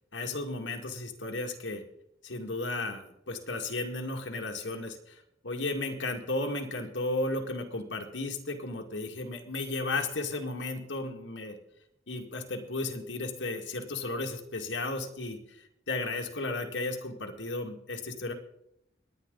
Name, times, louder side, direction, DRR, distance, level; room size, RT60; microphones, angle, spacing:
voice 1, 0.1-1.8 2.2-11.6 12.1-18.3, left 2 dB, 85° left, 3 dB, 2.1 m, -34 dB
25.5 x 10.5 x 4.0 m, 0.80 s
head